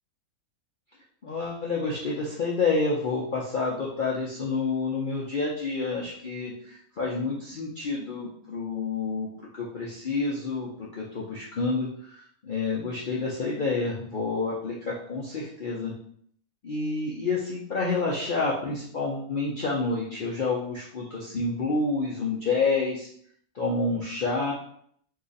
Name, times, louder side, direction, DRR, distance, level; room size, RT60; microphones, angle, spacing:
voice 1, 1.2-15.9 16.6-23.1 23.5-24.5, left 3 dB, 60° left, -5 dB, 0.5 m, -29 dB
2.9 x 2.4 x 3.9 m, 0.62 s
omnidirectional pair, 1.6 m